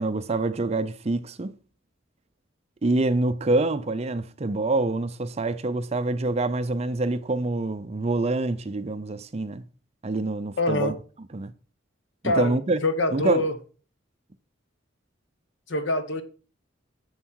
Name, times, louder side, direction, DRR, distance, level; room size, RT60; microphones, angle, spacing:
voice 1, 0.0-1.5 2.8-9.6 10.0-10.9 11.3-11.5 12.2-12.8 13.1-13.5, right 2 dB, 30° right, 0.5 m, -26 dB
voice 2, 10.6-10.9 12.2-13.5 15.7-16.2, left 2 dB, 65° left, 1.2 m, -25 dB
7.4 x 7.2 x 4.5 m
head